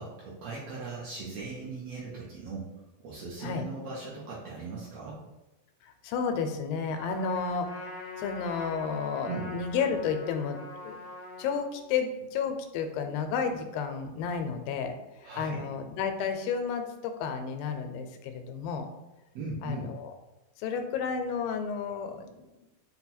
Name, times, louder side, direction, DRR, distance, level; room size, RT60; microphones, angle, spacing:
voice 1, 0.0-2.7 3.0-5.2 9.2-9.5 15.2-15.6 19.3-19.9, right 4 dB, 80° right, -5 dB, 1.5 m, -39 dB
voice 2, 5.8-10.6 10.8-11.0 11.4-18.9 19.6-20.1 20.6-22.7, left 6 dB, 90° left, 7 dB, 2.3 m, -32 dB
Trumpet, 6.9-11.6, left 3 dB, 60° left, 0.7 m, -42 dB
5.7 x 2.3 x 4.1 m, 0.99 s
omnidirectional pair, 4.0 m